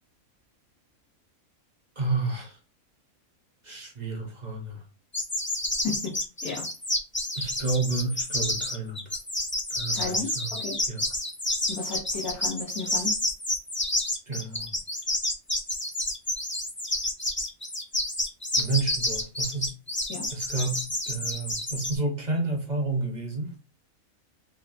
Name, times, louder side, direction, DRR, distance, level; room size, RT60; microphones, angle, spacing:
voice 1, 2.0-2.6 3.6-4.8 7.4-9.0 9.7-10.4 10.9-11.0 14.3-14.7 18.5-19.7 20.3-23.5, right 3 dB, 35° right, 0.8 m, -30 dB
sound 1, 5.1-21.9, left 1 dB, 15° left, 0.4 m, -29 dB
voice 2, 5.8-6.7 9.9-10.8 11.7-13.2 20.1-20.3, left 4 dB, 85° left, 1.4 m, -34 dB
6.0 x 2.2 x 2.6 m
omnidirectional pair, 1.5 m